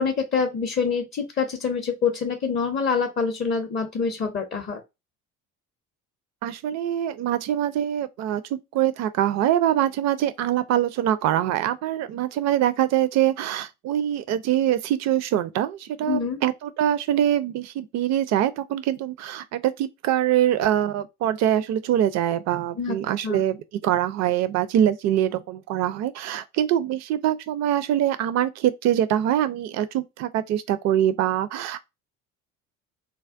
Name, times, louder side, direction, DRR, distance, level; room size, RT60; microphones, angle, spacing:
voice 1, 0.0-4.8 16.1-16.4 22.8-23.0 23.2-23.4, left 5 dB, 25° left, 0.5 m, -26 dB
voice 2, 6.4-23.6 23.8-31.8, right 11 dB, 40° right, 0.4 m, -24 dB
3.4 x 2.1 x 2.5 m
figure-of-eight pair, 60°, 43 cm